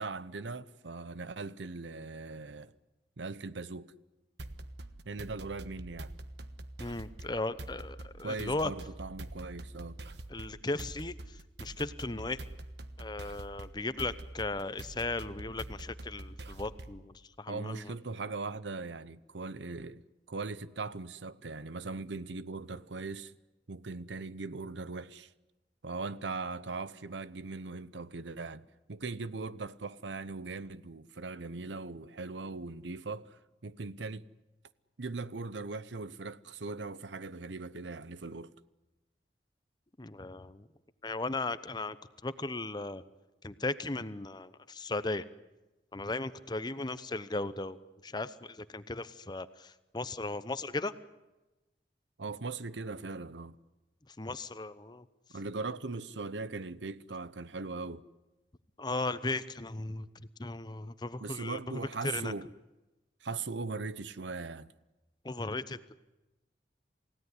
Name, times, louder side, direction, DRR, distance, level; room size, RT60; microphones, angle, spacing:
voice 1, 0.0-2.7 3.2-3.9 5.0-6.1 8.2-10.0 17.5-20.0 20.3-23.3 23.7-25.3 25.8-34.3 35.0-38.5 52.2-53.6 55.3-58.0 61.2-62.5 63.2-64.7, right 3 dB, 90° right, 0.9 m, -40 dB
sound 1, 4.4-17.1, right 1 dB, 70° right, 1.3 m, -45 dB
voice 2, 6.8-8.7 10.3-12.4 13.0-17.9 40.0-40.7 41.0-42.0 42.2-43.0 43.4-45.2 45.9-47.8 48.0-50.9 54.1-55.1 58.8-60.1 60.4-62.3 65.2-65.9, left 2 dB, 25° left, 0.9 m, -36 dB
28.5 x 17.0 x 9.9 m
head